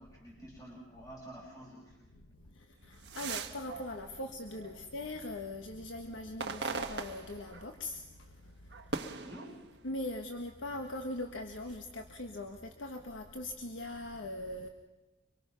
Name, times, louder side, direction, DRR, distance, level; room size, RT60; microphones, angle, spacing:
voice 1, 0.0-2.1 9.0-9.6, right 1 dB, 20° left, -3 dB, 5.3 m, -50 dB
voice 2, 2.4-9.0 9.8-14.7, left 1 dB, 85° left, 4 dB, 1.5 m, -41 dB
sound 1, 2.8-5.2 5.6-8.0 8.3-10.2 10.8-11.7, right 4 dB, 60° right, 1.5 m, -42 dB
25.5 x 23.0 x 5.8 m, 1.1 s
head